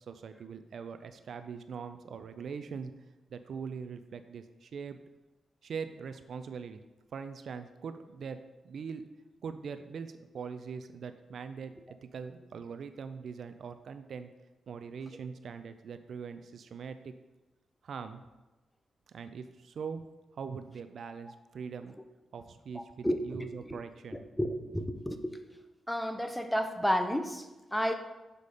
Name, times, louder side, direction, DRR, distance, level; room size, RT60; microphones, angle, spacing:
voice 1, 0.1-2.9 3.3-5.0 5.6-6.8 7.1-8.4 8.6-9.0 9.4-11.7 12.0-14.3 14.7-17.1 17.8-18.2 19.1-20.0 20.3-21.9 22.3-24.2, right 6 dB, 65° right, 9 dB, 0.4 m, -42 dB
voice 2, 22.7-23.8 24.1-25.4 25.9-27.9, equal, 5° left, 7 dB, 0.6 m, -32 dB
6.6 x 4.8 x 4.1 m, 1.1 s
cardioid pair, 75°, 0 cm